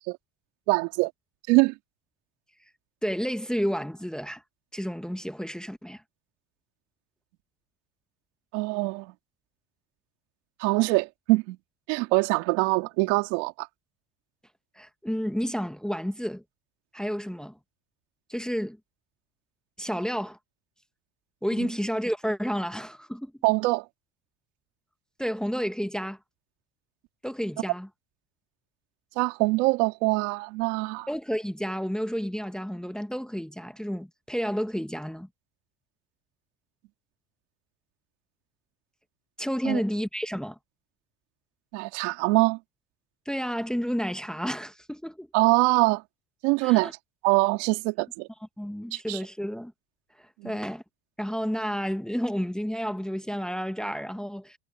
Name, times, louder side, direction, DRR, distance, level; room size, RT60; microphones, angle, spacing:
voice 1, 0.7-1.1 1.5-1.7 8.5-9.1 10.6-11.6 11.9-13.7 21.6-21.7 23.4-23.9 29.1-31.1 39.6-39.8 41.7-42.6 45.3-46.0 46.4-46.9 47.2-48.3 48.9-49.2 50.4-50.5, right 25 dB, 90° right, 3.2 m, -24 dB
voice 2, 3.0-4.4 4.7-6.0 14.8-16.4 16.9-17.6 18.3-18.8 19.8-20.4 21.4-23.3 25.2-26.2 27.2-27.9 31.1-35.3 39.4-40.6 43.2-45.3 46.6-46.9 48.6-49.7 50.2-50.8 51.2-54.6, equal, ahead, 1.2 m, -31 dB
supercardioid pair, 110°, 33 cm